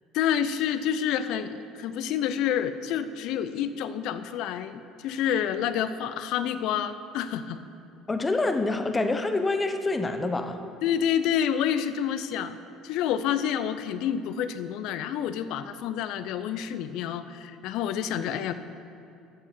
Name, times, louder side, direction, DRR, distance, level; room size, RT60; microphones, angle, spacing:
voice 1, 0.1-7.6 10.8-12.6 12.8-18.5, left 9 dB, 65° left, 12 dB, 0.5 m, -28 dB
voice 2, 8.1-10.6, left 2 dB, 20° left, 7 dB, 0.9 m, -26 dB
11.5 x 6.9 x 6.0 m, 2.6 s
hypercardioid pair, 65°, 0 cm